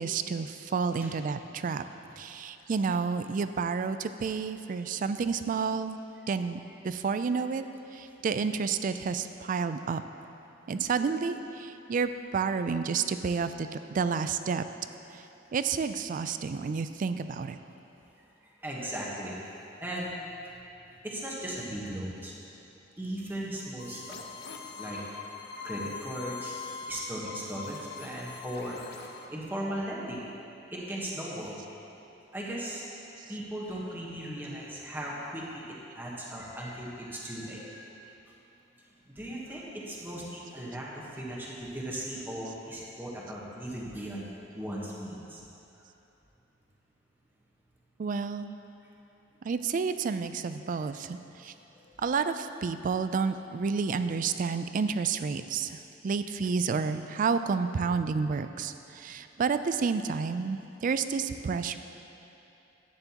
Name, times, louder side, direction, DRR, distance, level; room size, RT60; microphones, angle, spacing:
voice 1, 0.0-1.8 2.2-6.0 6.3-6.6 6.8-7.6 7.9-10.0 10.7-14.6 15.5-17.6 48.0-48.6 49.4-51.2 51.4-51.5 52.0-55.8 56.0-61.8, right 5 dB, 45° right, 11 dB, 0.3 m, -30 dB
voice 2, 18.6-20.1 20.4-20.5 21.0-22.3 23.0-24.2 24.8-25.0 25.6-26.6 26.9-28.8 29.3-30.3 30.7-31.6 32.3-32.8 33.3-37.8 39.1-44.3 44.5-45.4 50.8-50.9 51.4-51.8, right 1 dB, 10° right, -5 dB, 1.2 m, -37 dB
sound 1, 23.8-29.3, left 5 dB, 55° left, 0.7 m, -42 dB
11.5 x 9.1 x 2.9 m, 2.9 s
head